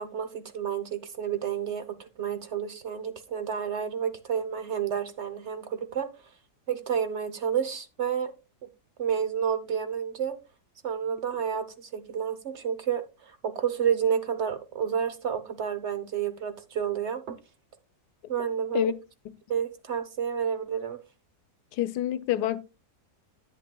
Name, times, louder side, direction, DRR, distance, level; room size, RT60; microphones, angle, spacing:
voice 1, 0.0-6.1 6.7-8.3 9.0-10.4 10.8-17.4 18.3-18.8 19.5-21.0, right 8 dB, 55° right, 0.9 m, -30 dB
voice 2, 21.7-22.6, left 13 dB, 90° left, 1.2 m, -27 dB
10.5 x 9.1 x 2.2 m
omnidirectional pair, 1.7 m